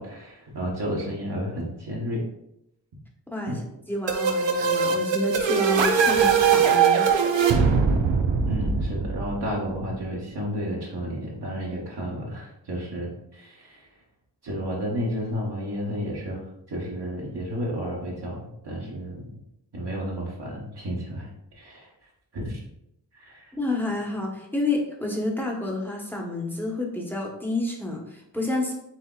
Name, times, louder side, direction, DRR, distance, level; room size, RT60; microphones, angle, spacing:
voice 1, 0.0-2.2 3.5-3.6 8.4-13.9 14.4-16.4 16.7-19.3 19.7-21.3 21.5-21.9 22.3-22.6 23.1-23.5, equal, 65° right, -5 dB, 1.2 m, -32 dB
voice 2, 3.3-7.1 23.5-28.7, left 2 dB, 5° left, -1 dB, 1.0 m, -29 dB
sound 1, 4.1-9.7, right 6 dB, 90° right, 0.6 m, -21 dB
7.7 x 2.8 x 2.4 m, 0.82 s
wide cardioid pair, 75°, 43 cm